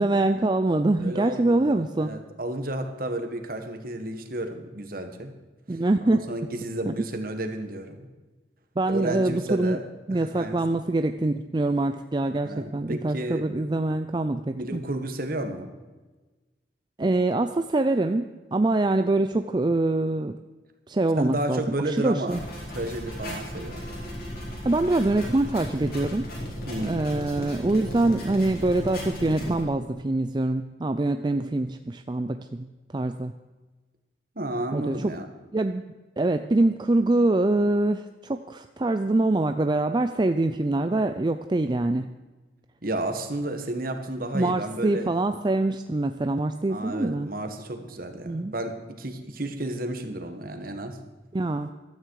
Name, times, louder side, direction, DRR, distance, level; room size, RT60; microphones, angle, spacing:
voice 1, 0.0-2.1 5.7-6.3 6.9-7.0 8.8-9.8 10.1-14.8 17.0-20.4 20.9-22.4 24.6-26.3 26.8-32.7 32.9-33.3 34.7-35.1 35.5-35.8 36.2-42.1 44.3-47.3 48.2-48.5 51.3-51.7, right 2 dB, 25° right, 8 dB, 0.4 m, -24 dB
voice 2, 1.0-5.3 5.7-8.1 8.9-9.8 10.1-10.8 12.4-13.6 14.5-15.7 21.2-22.4 22.7-23.8 26.6-27.1 34.3-35.2 42.8-45.1 46.7-51.0, right 1 dB, 50° right, 6 dB, 1.7 m, -32 dB
sound 1, 22.3-29.6, equal, 55° left, 4.8 m, -36 dB
16.0 x 12.5 x 4.8 m, 1.2 s
head